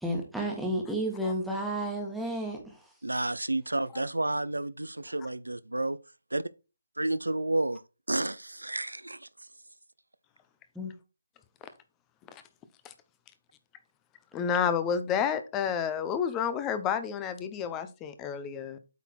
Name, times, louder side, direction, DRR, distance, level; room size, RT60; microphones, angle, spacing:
voice 1, 0.0-2.9 10.7-10.9, right 1 dB, ahead, 1.5 m, -32 dB
voice 2, 3.0-6.0 6.3-6.4 7.0-7.8 8.1-9.3, right 2 dB, 85° right, 0.5 m, -30 dB
voice 3, 14.3-18.8, left 7 dB, 15° left, 0.7 m, -30 dB
8.3 x 4.0 x 4.4 m
figure-of-eight pair, 145°, 0 cm